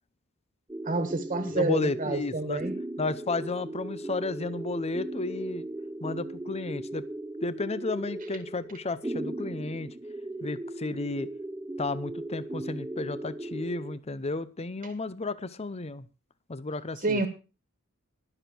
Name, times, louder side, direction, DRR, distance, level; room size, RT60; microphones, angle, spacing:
sound 1, 0.7-14.0, right 1 dB, 10° right, 0.5 m, -38 dB
voice 1, 0.8-2.7 17.0-17.3, right 2 dB, 35° right, 8 dB, 1.6 m, -28 dB
voice 2, 1.4-2.6 3.0-5.7 6.0-7.1 7.4-9.9 10.4-11.3 11.8-16.1 16.5-17.2, left 3 dB, 30° left, 16 dB, 0.7 m, -33 dB
20.5 x 7.1 x 4.5 m, 0.32 s
head